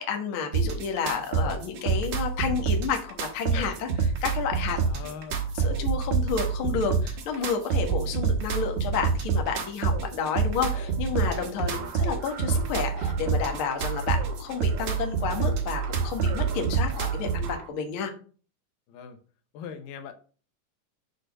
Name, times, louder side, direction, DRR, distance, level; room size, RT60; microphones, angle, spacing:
voice 1, 0.0-4.8 5.6-18.1, left 6 dB, 55° left, 4 dB, 1.6 m, -31 dB
sound 1, 0.5-17.5, right 5 dB, 60° right, 2.4 m, -27 dB
voice 2, 4.7-5.5 11.7-11.9 18.9-19.2 19.5-20.1, left 7 dB, 80° left, 8 dB, 2.5 m, -41 dB
sound 2, 10.7-17.7, right 7 dB, 75° right, 1.4 m, -43 dB
6.5 x 4.3 x 6.2 m, 0.40 s
omnidirectional pair, 3.9 m